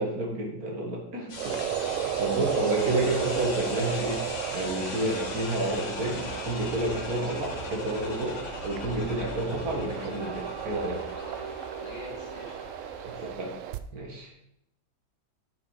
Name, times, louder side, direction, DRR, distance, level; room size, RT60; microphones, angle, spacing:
voice 1, 0.0-1.6 1.9-4.3 4.5-11.0 13.0-13.6 13.9-14.3, right 1 dB, 55° right, 0 dB, 2.0 m, -30 dB
sound 1, 1.3-13.3, left 3 dB, 90° left, 3.0 m, -39 dB
sound 2, 1.3-13.8, right 10 dB, 85° right, 0.7 m, -35 dB
voice 2, 11.1-11.4 11.7-12.6 13.1-13.3, left 2 dB, 70° left, -2 dB, 2.8 m, -46 dB
10.0 x 5.3 x 4.8 m, 0.77 s
omnidirectional pair, 1.9 m